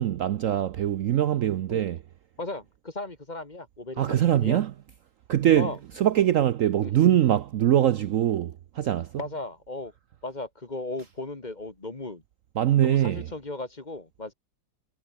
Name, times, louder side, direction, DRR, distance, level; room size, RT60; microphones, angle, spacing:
voice 1, 0.0-2.0 4.0-4.7 5.3-9.2 12.5-13.3, right 11 dB, 65° right, 0.9 m, -23 dB
voice 2, 2.4-4.2 4.4-4.6 5.6-5.8 6.8-6.9 9.2-9.9 10.2-12.2 12.8-14.3, left 2 dB, 25° left, 1.9 m, -36 dB
omnidirectional pair, 1.8 m